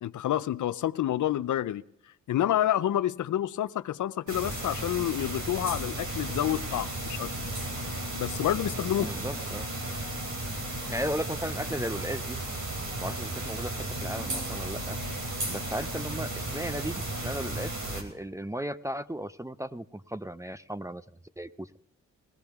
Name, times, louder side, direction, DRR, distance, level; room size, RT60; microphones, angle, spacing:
voice 1, 0.0-1.8 2.3-7.3 8.1-9.1, left 12 dB, 65° left, 16 dB, 0.6 m, -28 dB
sound 1, 4.3-18.0, right 1 dB, 70° right, 3.6 m, -34 dB
voice 2, 9.0-9.7 10.9-12.4 13.0-15.0 15.5-21.0 21.4-21.7, right 1 dB, 10° right, 14 dB, 0.5 m, -36 dB
21.0 x 16.0 x 3.6 m, 0.75 s
cardioid pair, 60°, 32 cm